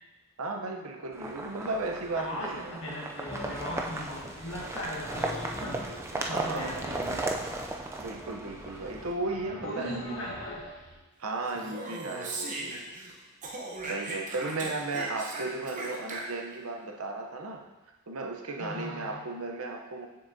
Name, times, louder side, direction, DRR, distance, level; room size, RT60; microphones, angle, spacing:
voice 1, 0.4-2.8 6.1-6.9 8.0-10.2 11.2-12.8 13.9-17.6 18.1-20.1, right 3 dB, 80° right, 2 dB, 0.8 m, -35 dB
sound 1, 1.1-9.1, right 2 dB, 10° right, 0.3 m, -36 dB
voice 2, 2.1-5.8 6.3-7.2 9.6-10.6 13.9-14.2 18.6-19.2, left 1 dB, 60° left, -3 dB, 1.5 m, -39 dB
sound 2, 3.2-11.0, left 1 dB, 35° left, 1.6 m, -44 dB
Speech, 11.5-13.1 13.4-16.6, right 2 dB, 35° right, 0.8 m, -38 dB
6.7 x 6.4 x 2.7 m, 1.1 s
head